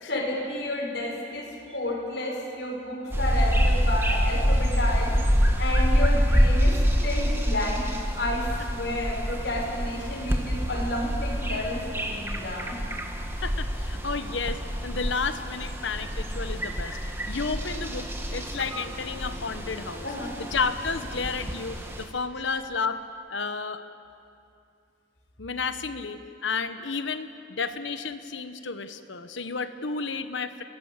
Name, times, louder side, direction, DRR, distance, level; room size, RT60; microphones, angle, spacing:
voice 1, 0.1-5.2 5.6-12.8 20.0-20.4, left 1 dB, 65° left, -2 dB, 6.0 m, -31 dB
sound 1, 3.1-22.0, equal, 15° right, 1.7 m, -26 dB
voice 2, 13.4-17.0 17.3-20.1 20.4-23.0 23.3-23.8 25.4-30.6, left 4 dB, 90° left, 10 dB, 1.2 m, -32 dB
27.0 x 18.5 x 7.5 m, 2.6 s
head